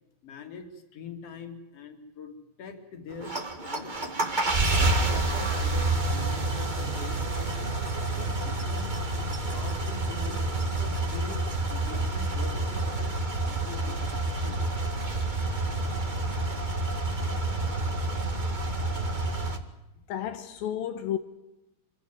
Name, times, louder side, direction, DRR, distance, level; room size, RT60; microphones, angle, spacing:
voice 1, 0.2-3.3 3.6-4.1 4.8-10.4 10.8-14.6, left 5 dB, 45° left, 3.5 m, -44 dB
sound 1, 3.1-19.6, right 2 dB, 30° right, 0.8 m, -28 dB
voice 2, 20.1-21.2, left 10 dB, 80° left, 2.8 m, -32 dB
26.0 x 16.5 x 9.2 m
omnidirectional pair, 4.2 m